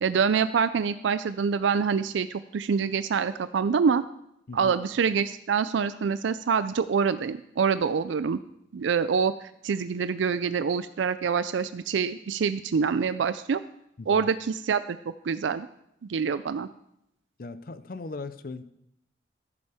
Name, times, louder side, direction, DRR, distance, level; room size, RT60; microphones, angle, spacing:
voice 1, 0.0-4.0 4.5-8.4 8.7-13.6 14.1-15.0 15.2-15.7 16.1-16.7, right 6 dB, 85° right, 13 dB, 0.4 m, -26 dB
voice 2, 17.4-18.6, left 3 dB, 50° left, 13 dB, 0.5 m, -38 dB
14.5 x 7.1 x 4.9 m, 0.79 s
head